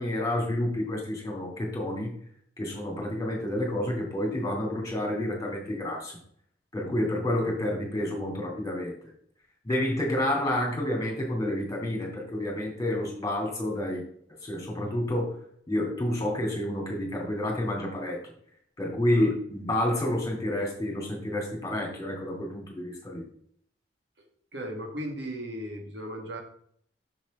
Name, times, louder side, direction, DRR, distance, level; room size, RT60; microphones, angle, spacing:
voice 1, 0.0-2.1 2.6-6.2 6.7-8.9 9.6-14.0 14.4-15.4 15.7-18.2 18.8-23.2, left 1 dB, 20° left, -1 dB, 3.0 m, -29 dB
voice 2, 24.5-26.4, equal, 75° right, 3 dB, 1.8 m, -36 dB
7.2 x 7.2 x 3.7 m, 0.64 s
head